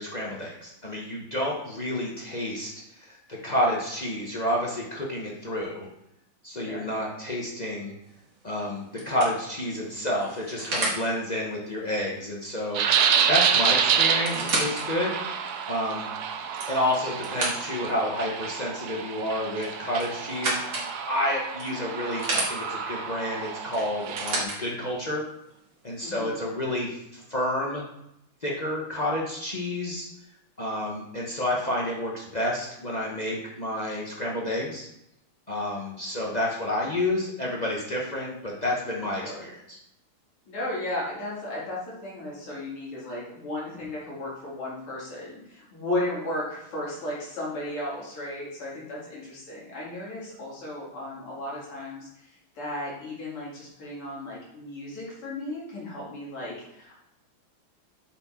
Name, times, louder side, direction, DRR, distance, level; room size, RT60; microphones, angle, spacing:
voice 1, 0.0-5.9 6.4-7.9 8.4-15.2 15.7-16.1 16.7-25.2 25.8-27.8 28.4-30.1 30.6-34.9 35.5-39.8, left 1 dB, 40° left, -3 dB, 0.6 m, -30 dB
voice 2, 6.5-6.9 26.0-26.4 39.2-39.5 40.4-57.0, left 1 dB, 85° left, -5 dB, 3.3 m, -35 dB
sound 1, 8.1-8.4 9.0-11.0 13.1-13.2 13.4-13.5 14.0-14.8 15.4-15.5 16.3-17.9 19.6-20.9 21.6-22.5 23.7-24.6 25.5-25.6, right 2 dB, 50° right, 2.5 m, -31 dB
sound 2, 12.7-24.4, right 7 dB, 85° right, 0.8 m, -28 dB
7.4 x 4.6 x 4.3 m, 0.82 s
omnidirectional pair, 2.4 m